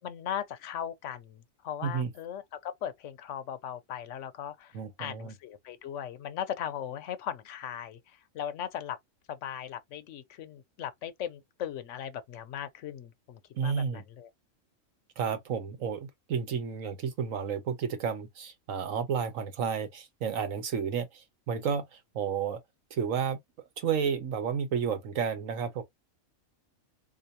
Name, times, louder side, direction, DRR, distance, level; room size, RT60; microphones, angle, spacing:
voice 1, 0.0-9.0 9.3-14.3, left 9 dB, 70° left, 0.9 m, -38 dB
voice 2, 4.7-5.3 13.5-14.0 15.2-21.9 22.1-22.6 22.9-23.4 23.8-25.8, right 7 dB, 75° right, 1.3 m, -31 dB
4.1 x 2.8 x 2.7 m
omnidirectional pair, 1.4 m